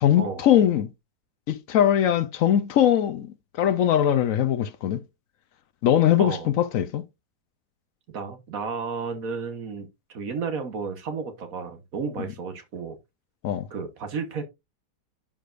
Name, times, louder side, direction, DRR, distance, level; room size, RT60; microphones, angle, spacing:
voice 1, 0.0-0.9 1.5-5.0 5.8-7.0 13.4-13.7, left 10 dB, 65° left, 0.9 m, -21 dB
voice 2, 6.2-6.5 8.1-13.0 13.7-14.4, right 5 dB, 60° right, 1.6 m, -32 dB
11.0 x 5.0 x 2.5 m
omnidirectional pair, 1.8 m